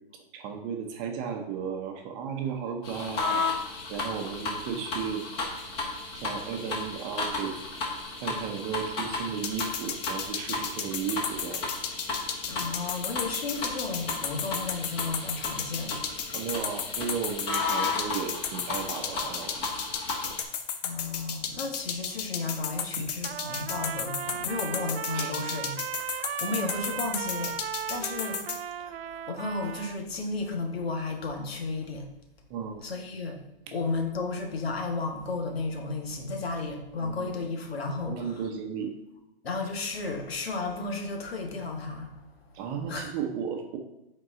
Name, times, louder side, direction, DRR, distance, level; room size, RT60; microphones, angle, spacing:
voice 1, 0.3-3.5 3.9-5.3 6.1-7.6 8.2-11.6 16.3-19.8 23.0-23.1 25.1-25.3 32.5-32.8 37.0-37.3 38.1-38.9 42.5-43.8, right 7 dB, 25° right, 4 dB, 0.8 m, -34 dB
sound 1, 2.8-20.4, left 3 dB, 20° left, 1.1 m, -34 dB
sound 2, 9.4-28.6, left 8 dB, 45° left, 0.8 m, -33 dB
voice 2, 12.4-16.0 20.8-27.6 27.9-28.4 28.8-32.1 32.8-33.4 33.7-38.5 39.4-42.6 42.9-43.1, left 3 dB, 85° left, 4 dB, 1.5 m, -33 dB
Trumpet, 23.2-30.0, right 9 dB, 80° right, 0.5 m, -37 dB
7.9 x 4.6 x 3.7 m, 0.91 s
hypercardioid pair, 150°, 30 cm